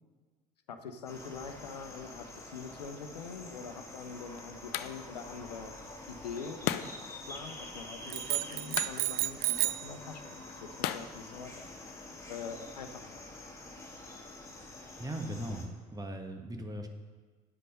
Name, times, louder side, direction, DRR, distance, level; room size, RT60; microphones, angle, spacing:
voice 1, 0.7-5.7 6.1-12.0 12.3-13.2, left 5 dB, 80° left, 8 dB, 0.9 m, -44 dB
sound 1, 1.1-15.7, left 2 dB, 15° left, 2.4 m, -47 dB
sound 2, 3.5-12.0, left 13 dB, 60° left, 0.6 m, -41 dB
sound 3, 8.1-9.9, right 17 dB, 45° right, 0.4 m, -32 dB
voice 2, 15.0-16.9, right 1 dB, 20° right, 5 dB, 1.5 m, -39 dB
9.7 x 8.3 x 5.5 m, 1.5 s
figure-of-eight pair, 55°, 21 cm